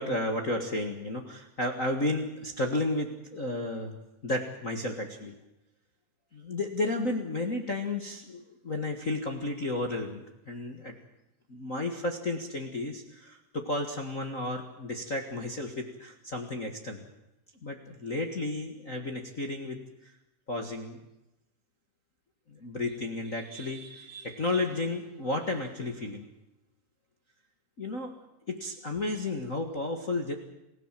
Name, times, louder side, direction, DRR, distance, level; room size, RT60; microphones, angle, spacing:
voice 1, 0.0-4.0 4.2-5.3 6.3-10.9 11.5-17.0 17.6-20.1 20.5-21.0 22.5-26.2 27.8-28.1 28.5-30.3, left 2 dB, 35° left, 3 dB, 1.4 m, -33 dB
28.5 x 16.0 x 7.6 m, 0.91 s
omnidirectional pair, 4.0 m